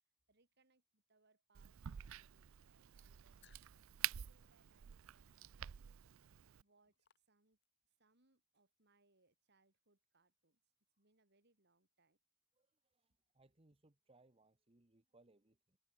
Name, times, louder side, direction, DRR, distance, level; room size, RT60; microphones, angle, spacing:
voice 1, 0.3-3.6 3.9-6.1 6.6-7.6 7.9-10.6 11.0-12.2, right 3 dB, 50° right, 4.2 m, -78 dB
Crack, 1.5-6.6, right 12 dB, 70° right, 0.5 m, -48 dB
sound 1, 3.4-7.9, left 10 dB, 55° left, 4.0 m, -76 dB
voice 2, 12.5-15.8, right 2 dB, 25° right, 1.2 m, -71 dB
head